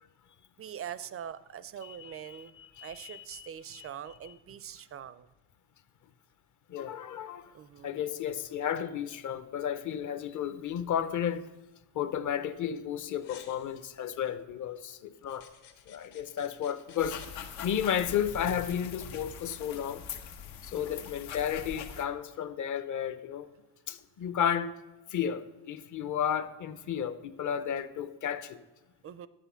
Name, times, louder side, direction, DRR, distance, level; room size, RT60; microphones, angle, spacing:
voice 1, 0.6-2.5 2.8-5.3 7.5-8.0 20.7-21.1 29.0-29.3, right 9 dB, 35° right, 0.4 m, -43 dB
voice 2, 1.8-3.9 6.7-7.5 7.8-11.5 11.9-15.5 15.9-17.2 17.6-20.0 20.6-23.5 23.9-24.7 25.1-28.6, left 9 dB, 45° left, 0.7 m, -33 dB
sound 1, 13.2-14.3 15.2-17.3, left 8 dB, 70° left, 1.8 m, -54 dB
sound 2, 17.0-22.0, left 7 dB, 90° left, 1.2 m, -42 dB
10.5 x 8.2 x 5.7 m
cardioid pair, 125°, 44 cm